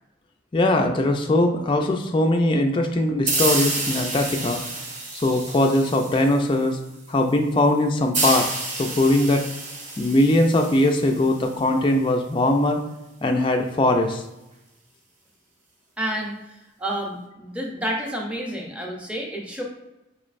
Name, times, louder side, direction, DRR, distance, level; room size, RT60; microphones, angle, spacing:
voice 1, 0.5-4.6 5.2-6.8 7.1-9.4 10.0-12.8 13.2-14.2, left 1 dB, 25° left, 3 dB, 0.3 m, -20 dB
sound 1, 3.3-6.7 8.1-11.6, right 3 dB, 40° right, 0.8 m, -29 dB
voice 2, 16.0-16.3 16.8-19.6, right 1 dB, 5° right, 0 dB, 0.7 m, -29 dB
4.7 x 3.0 x 2.5 m, 0.96 s
head